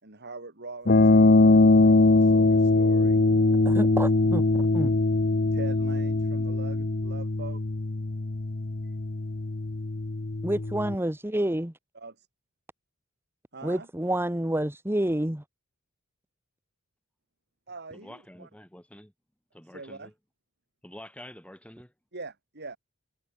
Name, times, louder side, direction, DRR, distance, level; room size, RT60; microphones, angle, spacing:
voice 1, 0.0-3.2 5.5-7.6 8.8-8.9 11.9-12.3 13.5-13.9 17.7-18.5 19.7-20.1 22.1-22.8, right 3 dB, 50° right, 4.7 m, -43 dB
sound 1, 0.9-11.0, left 2 dB, 45° left, 0.9 m, -22 dB
voice 2, 3.6-4.9 10.4-11.7 13.6-15.4, right 1 dB, 10° right, 1.4 m, -28 dB
voice 3, 17.9-19.1 19.5-20.1 20.8-21.9, left 1 dB, 5° left, 6.7 m, -47 dB
head